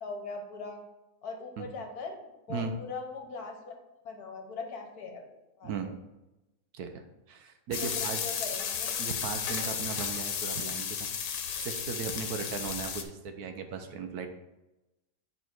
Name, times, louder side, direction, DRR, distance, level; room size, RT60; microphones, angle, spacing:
voice 1, 0.0-0.8 1.2-3.7 4.0-5.3 5.6-5.9 7.8-8.9, left 4 dB, 65° left, 2 dB, 1.6 m, -40 dB
voice 2, 5.6-6.0 6.7-8.2 9.0-11.1 11.6-14.3, right 5 dB, 70° right, 6 dB, 1.2 m, -37 dB
sound 1, 7.7-13.0, left 7 dB, 90° left, 1.4 m, -33 dB
8.5 x 4.0 x 4.5 m, 0.98 s
omnidirectional pair, 1.8 m